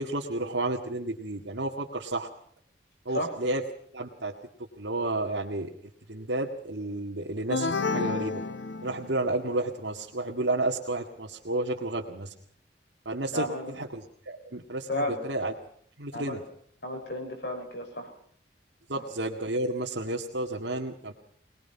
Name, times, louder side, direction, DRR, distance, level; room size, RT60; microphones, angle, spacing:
voice 1, 0.0-2.3 3.1-3.6 3.9-4.3 4.8-5.7 6.1-8.4 8.8-12.3 13.1-15.5 16.0-16.4 18.9-21.1, right 2 dB, 90° right, -2 dB, 2.0 m, -31 dB
sound 1, 7.5-9.3, left 4 dB, 85° left, 1.0 m, -30 dB
voice 2, 13.3-13.7 14.9-15.3 16.1-16.4 16.8-18.1 18.9-19.0, left 1 dB, 65° left, 3 dB, 6.6 m, -33 dB
24.0 x 20.0 x 5.8 m, 0.62 s
head